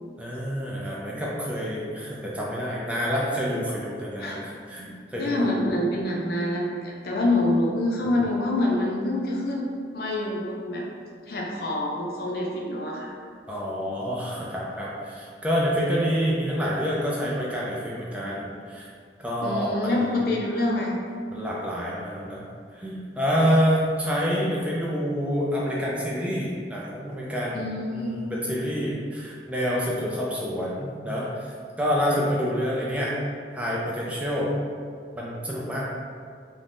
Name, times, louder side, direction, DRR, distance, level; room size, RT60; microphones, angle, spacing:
voice 1, 0.2-5.5 8.1-8.2 13.5-18.9 19.2-20.2 21.3-22.4 22.7-33.2 33.5-34.5 35.2-35.8, equal, 5° right, -5 dB, 0.3 m, -27 dB
voice 2, 5.2-9.7 9.9-10.8 11.3-13.1 19.4-20.9 27.5-28.2, left 1 dB, 55° left, -2 dB, 0.4 m, -26 dB
3.2 x 2.1 x 2.5 m, 2.1 s
head